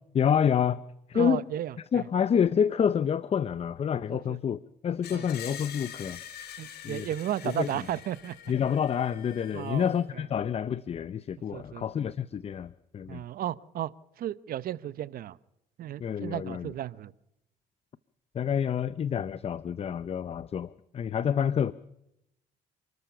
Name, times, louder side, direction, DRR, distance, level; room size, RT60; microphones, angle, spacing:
voice 1, 0.1-0.8 1.1-1.4 1.9-6.2 6.8-7.1 7.4-7.7 8.5-13.2 16.0-16.7 18.3-21.7, left 8 dB, 35° left, 17 dB, 0.7 m, -28 dB
voice 2, 1.1-2.0 4.1-4.4 5.1-5.3 6.6-8.3 9.5-9.9 11.5-11.9 13.1-13.9 14.2-15.4 15.8-17.1, right 12 dB, 60° right, 19 dB, 0.9 m, -34 dB
Screech, 5.0-10.0, left 9 dB, 70° left, 3.5 m, -45 dB
29.0 x 13.5 x 6.9 m, 0.82 s
cardioid pair, 110°, 17 cm